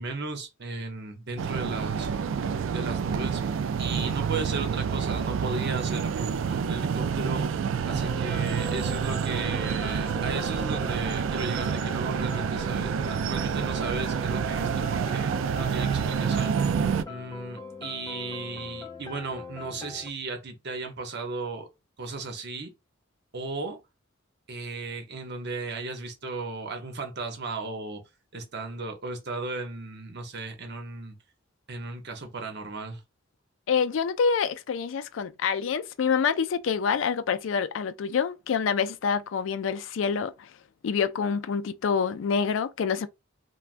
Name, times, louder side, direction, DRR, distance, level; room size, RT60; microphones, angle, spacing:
voice 1, 0.0-2.1 2.5-16.7 17.1-21.7 22.0-22.7 23.3-23.8 24.5-28.0 28.3-31.1 31.7-33.0, right 3 dB, 60° right, 0.9 m, -36 dB
sound 1, 1.4-17.0, right 6 dB, 75° right, 0.3 m, -28 dB
sound 2, 7.9-20.1, left 3 dB, 20° left, 0.4 m, -42 dB
voice 2, 33.7-40.5 40.8-43.1, left 6 dB, 75° left, 0.4 m, -27 dB
3.3 x 2.2 x 2.5 m
head